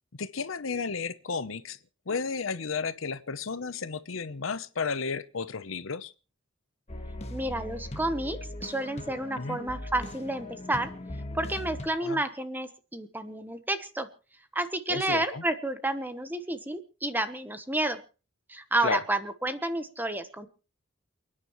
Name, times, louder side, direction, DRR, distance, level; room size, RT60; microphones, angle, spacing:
voice 1, 0.2-1.8 2.1-6.1 9.4-9.6 12.0-12.2 14.9-15.4 18.8-19.0, left 5 dB, 75° left, 0.8 m, -33 dB
sound 1, 6.9-11.9, left 1 dB, 30° left, 1.5 m, -39 dB
voice 2, 7.3-10.9 11.3-14.1 14.5-18.0 18.5-20.5, right 1 dB, 10° right, 1.1 m, -30 dB
29.0 x 9.8 x 3.1 m
head